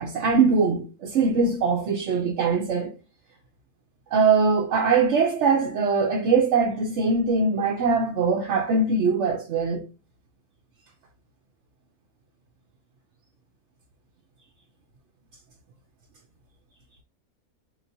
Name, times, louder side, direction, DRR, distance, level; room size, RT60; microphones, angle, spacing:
voice 1, 0.0-2.9 4.1-9.9, right 4 dB, 60° right, 0.9 m, -22 dB
4.3 x 2.9 x 2.7 m
omnidirectional pair, 1.5 m